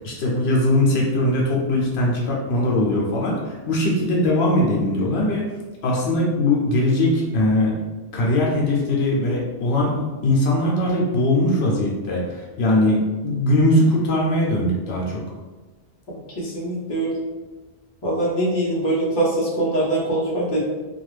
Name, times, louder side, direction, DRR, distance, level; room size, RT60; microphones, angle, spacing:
voice 1, 0.0-5.4 5.8-7.7 8.1-15.2, left 1 dB, 75° left, -3 dB, 0.9 m, -20 dB
voice 2, 16.4-17.1 18.0-20.6, right 1 dB, 30° left, -5 dB, 0.7 m, -23 dB
2.5 x 2.4 x 3.2 m, 1.2 s
omnidirectional pair, 1.1 m